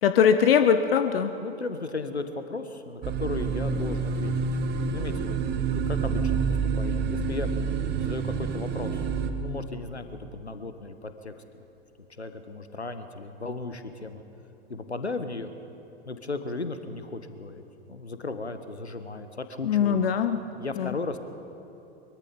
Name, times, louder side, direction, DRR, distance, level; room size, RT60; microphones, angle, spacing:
voice 1, 0.0-1.3 19.6-20.4 20.8-20.9, left 7 dB, 60° left, 9 dB, 1.1 m, -21 dB
voice 2, 1.4-4.3 4.9-7.5 8.0-9.0 9.4-11.6 12.2-14.2 14.7-15.5 16.0-20.0 20.6-21.2, left 3 dB, 85° left, 9 dB, 1.4 m, -36 dB
sound 1, 3.0-9.3, right 5 dB, 30° right, 1.7 m, -28 dB
23.5 x 23.0 x 5.4 m, 2.9 s
figure-of-eight pair, 90°, 32 cm